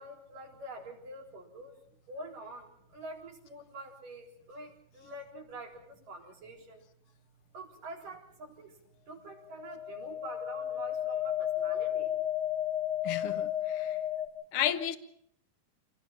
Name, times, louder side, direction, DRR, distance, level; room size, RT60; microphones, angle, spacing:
voice 1, 0.0-1.7 2.1-6.8 7.5-8.8 9.1-12.1, right 2 dB, 80° right, 5.6 m, -46 dB
sound 1, 9.5-14.3, left 11 dB, 35° left, 2.1 m, -33 dB
voice 2, 13.0-14.0 14.5-15.0, left 10 dB, 65° left, 1.4 m, -32 dB
27.0 x 18.0 x 5.8 m
omnidirectional pair, 3.8 m